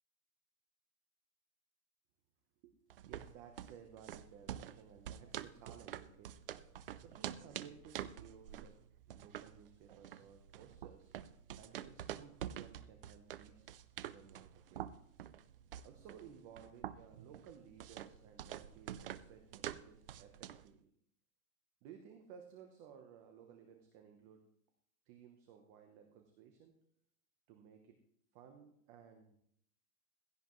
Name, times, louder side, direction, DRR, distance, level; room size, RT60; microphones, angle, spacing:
sound 1, 2.9-20.7, right 11 dB, 40° right, 0.5 m, -47 dB
voice 1, 3.0-6.4 7.0-8.8 9.1-11.1 11.6-13.6 14.1-14.9 15.8-20.9 21.8-24.4 25.1-26.7 27.5-28.0 28.3-29.4, right 7 dB, 20° right, 5 dB, 0.9 m, -58 dB
16.0 x 15.5 x 3.1 m, 0.69 s
supercardioid pair, 170°, 43 cm